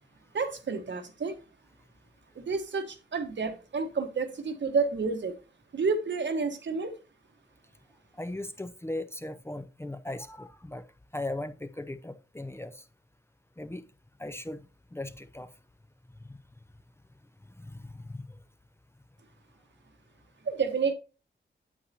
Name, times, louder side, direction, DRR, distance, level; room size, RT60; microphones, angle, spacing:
voice 1, 0.3-1.4 2.4-5.3 5.7-6.9 20.4-20.9, right 4 dB, 70° right, 1.3 m, -30 dB
voice 2, 8.2-10.8 11.1-12.8 13.6-13.8 14.2-14.6 14.9-15.5 16.3-16.4 17.6-18.2, left 1 dB, 15° left, 0.6 m, -38 dB
8.6 x 8.0 x 2.7 m
wide cardioid pair, 90°, 20 cm